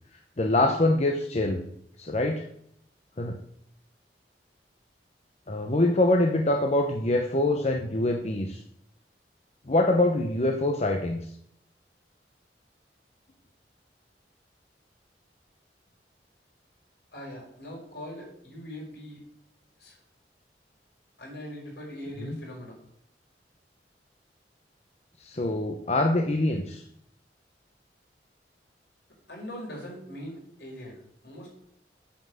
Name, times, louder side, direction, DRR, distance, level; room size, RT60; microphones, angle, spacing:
voice 1, 0.4-1.6 2.0-2.4 3.2-3.4 5.5-8.6 9.7-11.2 22.2-22.4 25.2-26.8, left 2 dB, 35° left, 3 dB, 0.9 m, -24 dB
voice 2, 17.1-19.3 19.8-20.0 21.2-22.8 29.3-31.5, equal, 70° left, -1 dB, 4.9 m, -41 dB
8.6 x 7.9 x 7.8 m, 0.72 s
head